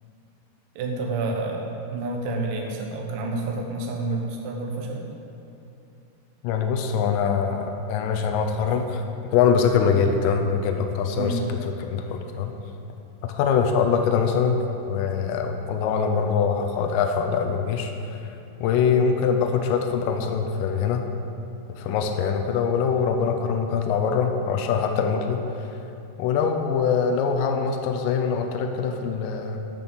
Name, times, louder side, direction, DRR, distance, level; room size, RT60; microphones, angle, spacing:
voice 1, 0.8-5.1 11.1-11.4, right 2 dB, 65° right, 1 dB, 2.5 m, -29 dB
voice 2, 6.4-9.0 9.3-11.4 11.8-12.5 13.2-14.6 14.9-18.2 18.6-21.1 21.8-25.8 26.2-29.6, left 6 dB, 90° left, 4 dB, 2.0 m, -23 dB
11.0 x 6.0 x 7.0 m, 2.8 s
omnidirectional pair, 4.8 m